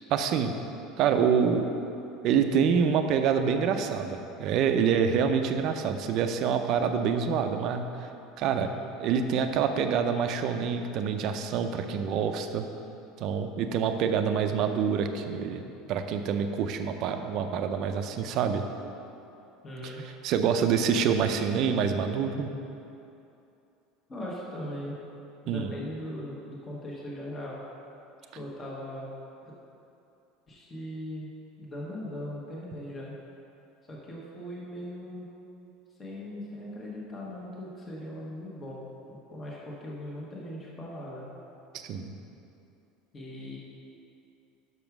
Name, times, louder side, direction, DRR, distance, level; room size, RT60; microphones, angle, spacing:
voice 1, 0.1-0.5 1.0-1.7 2.2-8.1 8.4-8.7 9.0-12.7 13.2-15.6 15.9-18.6 19.8-19.9 20.2-22.5 25.5-25.7 41.7-42.1, right 7 dB, 50° right, 7 dB, 0.5 m, -26 dB
voice 2, 8.6-8.9 19.6-20.0 24.1-25.0 25.4-27.6 28.3-29.1 29.4-29.5 30.5-31.3 31.6-33.1 33.9-35.3 36.0-38.8 39.1-41.2 43.1-43.6, left 1 dB, 20° left, -5 dB, 1.2 m, -39 dB
6.0 x 5.2 x 5.9 m, 2.8 s
supercardioid pair, 140°, 0 cm